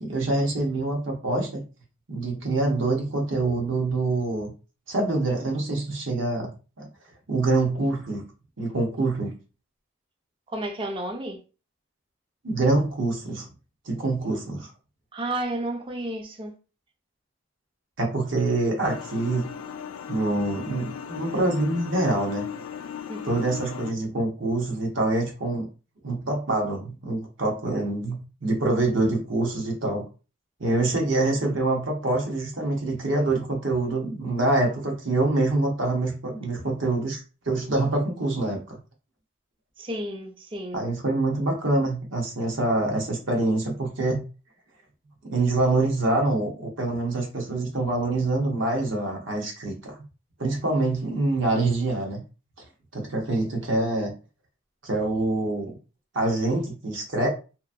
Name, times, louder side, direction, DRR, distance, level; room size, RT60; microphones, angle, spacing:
voice 1, 0.0-1.6 2.1-4.5 4.9-6.5 6.8-6.9 7.3-8.3 8.6-9.4 12.4-13.5 13.9-14.7 18.0-19.4 20.1-22.5 23.2-25.7 26.0-30.1 30.6-38.8 40.7-44.2 45.2-50.0 50.4-52.2 52.9-54.1 54.8-55.7 56.1-57.3, right 2 dB, 65° right, 1.0 m, -25 dB
voice 2, 10.5-11.4 15.1-16.5 23.1-23.5 39.8-40.9, right 1 dB, 25° right, 0.4 m, -32 dB
sound 1, 18.8-23.9, left 7 dB, 90° left, 0.3 m, -37 dB
2.9 x 2.5 x 2.5 m
head